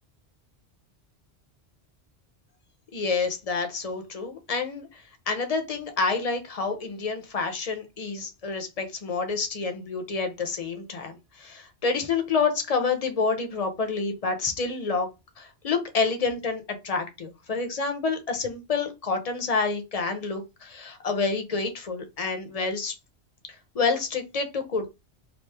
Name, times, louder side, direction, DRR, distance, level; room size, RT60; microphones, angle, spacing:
voice 1, 2.9-4.9 5.3-15.1 15.4-22.9 23.7-25.0, left 4 dB, 40° left, 0.6 m, -28 dB
3.0 x 2.4 x 3.3 m
omnidirectional pair, 1.2 m